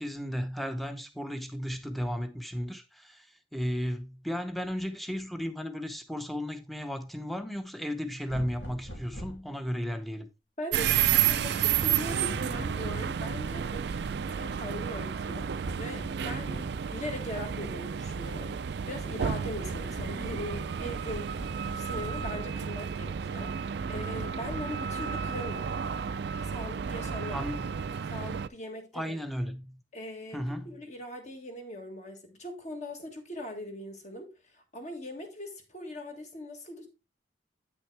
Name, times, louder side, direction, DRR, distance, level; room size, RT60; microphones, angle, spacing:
voice 1, 0.0-3.3 3.5-10.3 27.3-27.7 28.9-29.8 30.3-30.8, equal, ahead, 0.8 m, -34 dB
sound 1, 8.3-9.5 11.7-12.9 15.6-16.9 19.4-22.6 24.4-24.6, right 1 dB, 85° left, 2.4 m, -42 dB
voice 2, 10.6-16.6 16.9-21.4 21.7-25.8 26.4-27.5 28.1-29.2 29.9-36.9, left 1 dB, 40° left, 1.7 m, -40 dB
sound 2, 10.7-28.5, right 8 dB, 65° right, 0.4 m, -31 dB
8.8 x 6.1 x 3.3 m
head